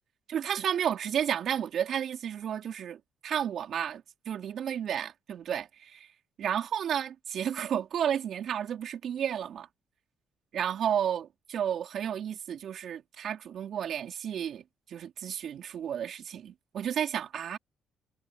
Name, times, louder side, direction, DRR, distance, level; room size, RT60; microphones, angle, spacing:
voice 1, 0.3-6.1 6.4-9.7 10.5-17.6, right 9 dB, 65° right, 4.0 m, -32 dB
supercardioid pair, 70°, 0 cm